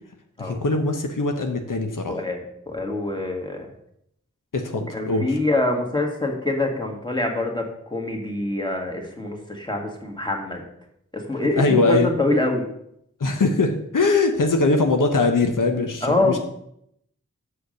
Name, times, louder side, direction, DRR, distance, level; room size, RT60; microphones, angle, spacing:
voice 1, 0.4-2.2 4.5-5.4 11.4-12.1 13.2-16.4, left 3 dB, 85° left, 4 dB, 0.9 m, -21 dB
voice 2, 2.1-2.4 2.7-3.7 4.9-10.6 11.1-12.6 16.0-16.4, left 2 dB, 15° left, 1 dB, 1.8 m, -25 dB
6.6 x 5.1 x 6.4 m, 0.74 s
wide cardioid pair, 50°, 31 cm